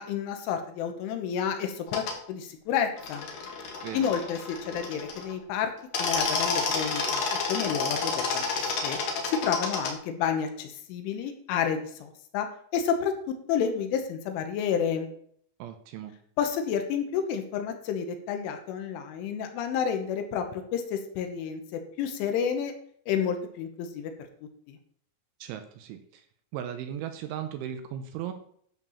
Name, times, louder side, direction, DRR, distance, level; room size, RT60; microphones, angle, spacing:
voice 1, 0.0-3.3 3.9-5.7 6.0-8.5 8.8-9.0 9.2-12.5 12.7-13.1 13.5-15.1 16.4-22.7 23.1-24.1 24.7-24.8, left 7 dB, 75° left, 6 dB, 3.4 m, -30 dB
sound 1, 1.9-2.1 3.0-5.3 5.8-9.9, left 4 dB, 55° left, 2.2 m, -30 dB
voice 2, 15.6-16.1 25.4-26.2 26.5-28.3, right 10 dB, 80° right, 8 dB, 3.0 m, -37 dB
12.0 x 4.5 x 7.1 m, 0.62 s
omnidirectional pair, 6.0 m